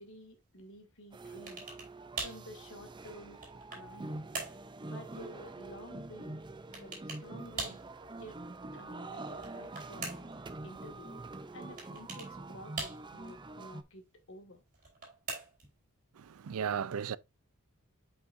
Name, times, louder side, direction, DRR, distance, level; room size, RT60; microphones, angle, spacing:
voice 1, 0.0-1.7 2.2-3.4 3.7-4.2 4.8-7.8 8.2-8.4 8.7-11.2 11.5-14.6, equal, 60° left, 2.2 m, -51 dB
sound 1, 1.1-13.8, right 2 dB, 20° right, 0.5 m, -45 dB
sound 2, 1.5-1.9 2.2-2.5 3.1-3.9 4.3-4.6 6.7-7.3 7.6-7.9 9.3-10.4 11.8-12.3 12.8-13.3 14.7-15.7, right 3 dB, 40° right, 4.1 m, -41 dB
voice 2, 16.2-17.2, right 7 dB, 75° right, 0.4 m, -35 dB
8.2 x 5.5 x 2.6 m
head